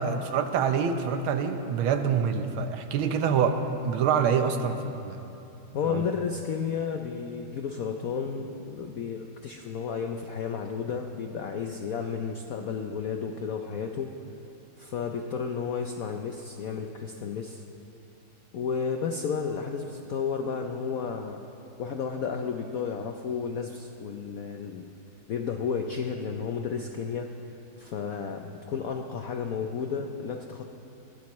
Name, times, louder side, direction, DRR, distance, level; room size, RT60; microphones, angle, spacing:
voice 1, 0.0-3.6 3.8-5.3 5.9-6.1, right 6 dB, 80° right, 8 dB, 1.7 m, -26 dB
voice 2, 5.7-14.1 14.8-17.6 18.5-21.4 21.8-24.9 25.3-27.3 27.8-30.7, left 6 dB, 75° left, 4 dB, 0.8 m, -32 dB
20.5 x 16.0 x 3.1 m, 2.8 s
omnidirectional pair, 2.3 m